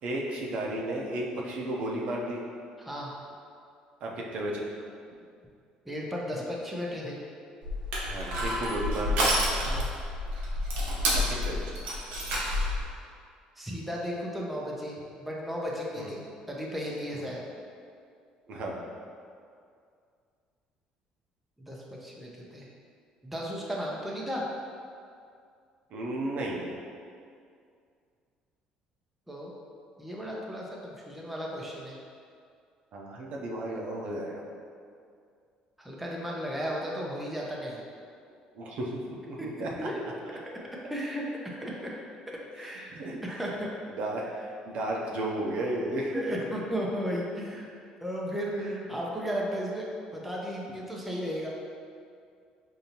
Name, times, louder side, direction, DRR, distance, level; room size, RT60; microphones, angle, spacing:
voice 1, 0.0-2.4 4.0-4.7 8.0-9.3 11.1-11.7 16.0-16.1 17.1-17.3 18.5-18.8 25.9-26.6 32.9-34.4 38.5-39.7 40.2-40.4 42.6-43.2 44.0-46.4 48.5-48.8, right 1 dB, 60° right, -2 dB, 0.6 m, -34 dB
voice 2, 2.8-3.1 5.9-7.2 9.6-9.9 13.6-17.4 21.6-22.7 23.2-24.5 29.3-29.5 30.0-32.0 35.8-37.8 39.4-39.5 39.8-40.0 40.9-41.2 41.6-41.7 42.6-42.9 43.2-43.7 46.1-47.7 48.0-51.5, equal, 5° right, -4 dB, 0.6 m, -35 dB
Crushing, 7.6-12.8, equal, 85° right, 0.9 m, -29 dB
5.2 x 2.7 x 2.8 m, 2.3 s
cardioid pair, 130°, 2 cm